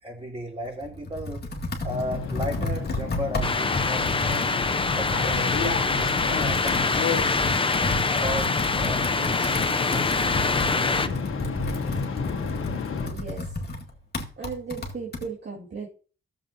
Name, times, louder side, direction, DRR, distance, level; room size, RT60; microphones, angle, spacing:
voice 1, 0.0-1.5 1.8-4.6 4.9-7.4 8.1-9.5 9.9-11.3, equal, 30° right, -2 dB, 3.0 m, -36 dB
Computer keyboard, 0.7-15.3, left 2 dB, 50° left, 2.1 m, -33 dB
sound 1, 1.9-13.1, left 5 dB, 80° left, 1.4 m, -32 dB
sound 2, 3.4-11.1, left 4 dB, 25° left, 0.6 m, -25 dB
voice 2, 13.0-13.4 14.4-15.9, right 5 dB, 60° right, -3 dB, 2.4 m, -36 dB
14.5 x 7.3 x 2.8 m, 0.38 s
cardioid pair, 70°, 21 cm